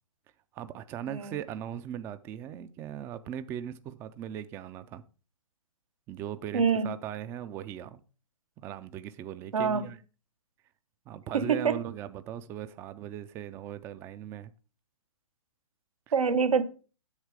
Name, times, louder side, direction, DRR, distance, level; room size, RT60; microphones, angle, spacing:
voice 1, 0.5-5.0 6.1-8.0 8.6-10.0 11.1-14.5 16.1-16.2, right 10 dB, 15° right, 0.3 m, -39 dB
voice 2, 1.1-1.4 6.5-6.9 9.5-9.9 11.3-11.8 16.1-16.6, right 6 dB, 90° right, 1.2 m, -25 dB
8.1 x 6.5 x 4.9 m
hypercardioid pair, 140°, 17 cm